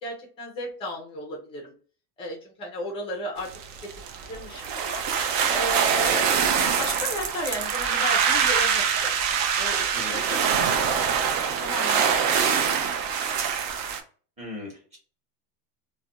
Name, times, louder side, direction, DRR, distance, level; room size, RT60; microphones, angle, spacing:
voice 1, 0.0-1.7 2.2-3.5 4.3-5.0 5.5-9.1 9.6-12.6, left 1 dB, 15° left, -1 dB, 0.4 m, -35 dB
sound 1, 3.4-14.0, right 7 dB, 55° right, 0.6 m, -24 dB
voice 2, 9.9-10.3 14.4-15.0, left 1 dB, 15° right, -3 dB, 0.9 m, -36 dB
2.5 x 2.2 x 2.8 m, 0.41 s
supercardioid pair, 165°, 48 cm